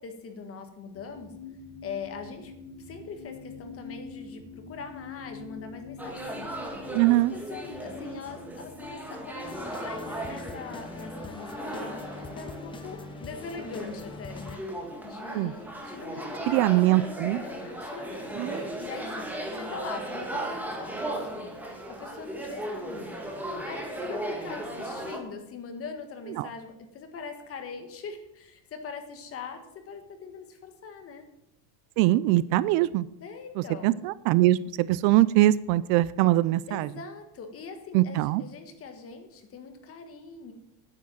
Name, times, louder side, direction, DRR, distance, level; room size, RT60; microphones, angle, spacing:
voice 1, 0.0-1.3 1.8-6.4 7.0-17.0 17.4-21.6 21.9-31.3 33.2-34.0 36.7-40.5, left 5 dB, 30° left, 6 dB, 1.7 m, -42 dB
sound 1, 0.9-11.0 11.6-11.7, left 4 dB, 55° left, 4.5 m, -46 dB
sound 2, 6.0-25.2, right 1 dB, 5° right, 1.9 m, -37 dB
voice 2, 6.9-7.3 15.3-15.5 16.5-17.4 18.4-18.6 26.4-26.5 32.0-33.1 33.6-36.9 37.9-38.4, right 16 dB, 60° right, 18 dB, 0.5 m, -22 dB
sound 3, 9.4-14.6, left 3 dB, 10° left, 0.6 m, -42 dB
9.8 x 8.9 x 7.3 m, 0.84 s
cardioid pair, 155°, 42 cm